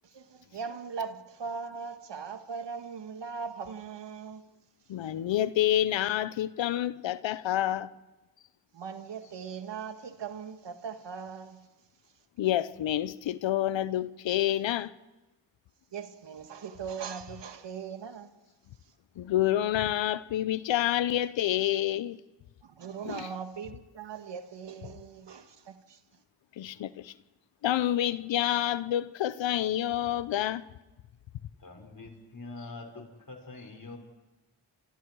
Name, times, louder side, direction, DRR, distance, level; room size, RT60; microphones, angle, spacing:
voice 1, 0.0-4.4 8.7-11.7 15.9-18.3 18.8-18.9 22.6-26.0, right 6 dB, 75° right, 1.8 m, -40 dB
voice 2, 4.9-7.9 12.4-14.9 19.2-22.2 23.1-23.3 26.6-27.1 27.6-30.6, left 12 dB, 90° left, 0.8 m, -28 dB
voice 3, 31.6-34.0, left 3 dB, 50° left, 5.8 m, -44 dB
28.0 x 25.0 x 4.7 m
cardioid pair, 45°, 43 cm